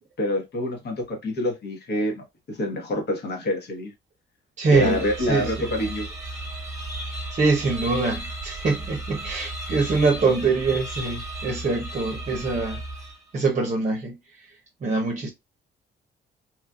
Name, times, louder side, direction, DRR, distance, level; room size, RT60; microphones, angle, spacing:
voice 1, 0.2-3.9 4.7-6.1, left 1 dB, 55° left, 1.3 m, -27 dB
voice 2, 4.6-5.7 7.3-12.8 13.3-14.2 14.8-15.3, right 4 dB, 35° right, 0.8 m, -24 dB
sound 1, 4.7-13.4, right 1 dB, 15° right, 1.3 m, -35 dB
3.0 x 2.5 x 2.4 m
cardioid pair, 90°, 20 cm